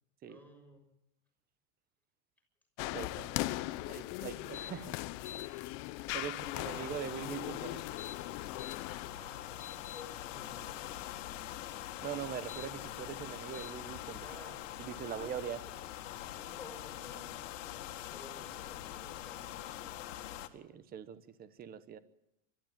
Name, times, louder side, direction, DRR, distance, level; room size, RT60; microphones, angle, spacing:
voice 1, 0.2-0.8 8.9-11.4 14.2-15.8 16.3-17.7 18.1-20.1, left 1 dB, 5° left, 3 dB, 6.7 m, -56 dB
sound 1, 2.8-9.1, left 19 dB, 45° left, 0.7 m, -39 dB
voice 2, 2.9-3.3 3.9-4.9 6.1-7.8 12.0-14.2 14.8-15.6 20.3-22.0, right 9 dB, 25° right, 14 dB, 1.1 m, -42 dB
sound 2, 4.5-4.7 5.1-5.5 7.8-8.8 9.3-10.0 12.3-12.7 13.5-13.7, left 9 dB, 20° left, 0.9 m, -47 dB
sound 3, 6.4-20.5, left 13 dB, 80° left, 2.1 m, -44 dB
24.0 x 13.5 x 8.9 m, 0.84 s
supercardioid pair, 145°, 37 cm